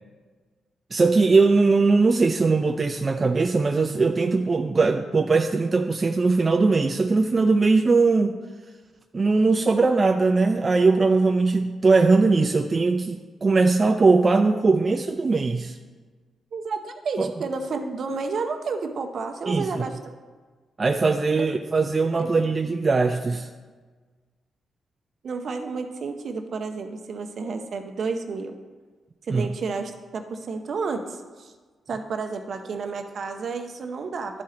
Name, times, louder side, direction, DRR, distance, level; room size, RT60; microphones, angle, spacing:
voice 1, 0.9-8.3 9.1-15.8 17.2-17.3 19.5-19.8 20.8-23.5 29.3-29.5, right 3 dB, 35° right, 5 dB, 0.4 m, -20 dB
voice 2, 16.5-20.0 21.3-21.5 22.2-22.3 25.2-28.5 29.3-31.5 31.9-34.4, right 4 dB, 60° right, 6 dB, 0.7 m, -31 dB
11.0 x 4.3 x 3.8 m, 1.4 s
cardioid pair, 75°, 0 cm